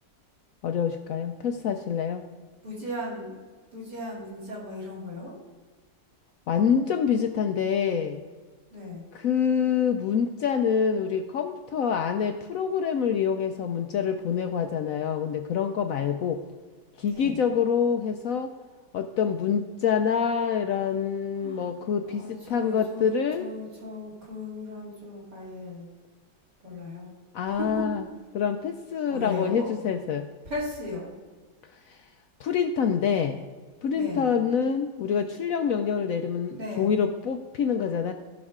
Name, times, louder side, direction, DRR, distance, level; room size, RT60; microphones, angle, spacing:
voice 1, 0.6-2.3 6.5-8.2 9.1-16.4 17.0-18.5 18.9-23.5 27.3-28.0 28.3-30.3 31.9-32.0 32.4-33.4 33.8-38.1, left 7 dB, 75° left, 6 dB, 0.8 m, -26 dB
voice 2, 2.6-3.4 3.7-5.4 8.7-9.1 17.1-17.4 21.4-21.7 22.0-25.9 26.6-27.1 27.4-27.9 29.1-29.7 30.5-31.1 33.9-34.3 36.5-37.0, left 1 dB, 60° right, -7 dB, 3.6 m, -37 dB
16.0 x 6.0 x 3.6 m, 1.4 s
omnidirectional pair, 2.0 m